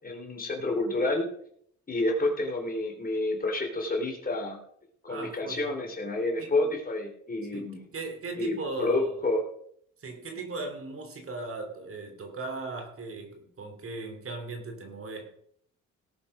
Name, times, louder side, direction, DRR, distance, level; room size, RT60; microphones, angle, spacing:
voice 1, 0.0-1.3 1.9-4.6 5.0-7.8 8.4-9.4, left 2 dB, 30° left, 3.5 m, -29 dB
voice 2, 5.1-5.7 6.4-6.5 7.5-9.2 10.0-15.3, right 3 dB, 45° right, 3.1 m, -38 dB
18.0 x 7.3 x 5.0 m
cardioid pair, 90°, 30 cm